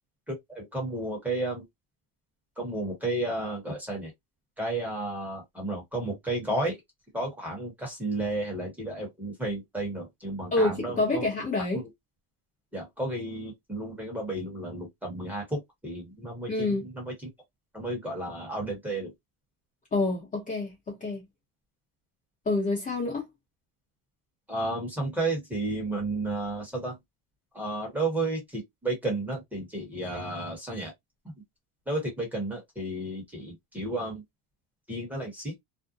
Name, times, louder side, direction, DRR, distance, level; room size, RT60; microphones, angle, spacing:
voice 1, 0.3-1.6 2.6-4.1 4.6-6.8 7.1-11.3 11.7-11.9 12.7-17.1 17.7-19.1 24.5-27.0 27.5-30.9 31.9-34.2 34.9-35.5, right 2 dB, 5° right, 1.0 m, -32 dB
voice 2, 10.5-11.8 16.5-16.8 19.9-21.2 22.4-23.3, left 2 dB, 20° left, 0.8 m, -27 dB
2.5 x 2.1 x 2.6 m
cardioid pair, 160°, 37 cm